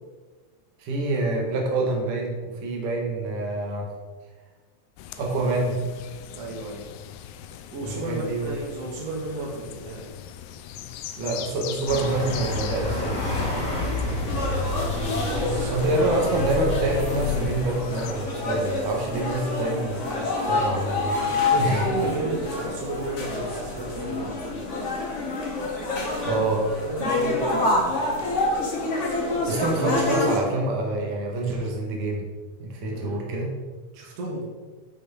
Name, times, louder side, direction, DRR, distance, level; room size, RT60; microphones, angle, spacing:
voice 1, 0.8-3.9 5.2-5.8 7.8-8.6 11.2-13.2 15.7-20.1 20.4-21.9 26.2-26.6 29.5-32.3 32.6-33.5, right 2 dB, 85° right, 0 dB, 2.9 m, -26 dB
sound 1, 5.0-18.1, left 10 dB, 80° left, 2.0 m, -41 dB
voice 2, 6.3-6.9 7.7-10.1 13.9-14.4 15.2-15.9 21.1-24.3 26.8-28.0 32.9-33.3 33.9-34.5, right 2 dB, 55° right, -2 dB, 2.6 m, -33 dB
sound 2, 11.9-17.5, left 2 dB, 30° left, 1.9 m, -28 dB
sound 3, 14.3-30.4, left 2 dB, 45° left, 0.9 m, -27 dB
10.0 x 6.0 x 4.1 m, 1.3 s
omnidirectional pair, 3.6 m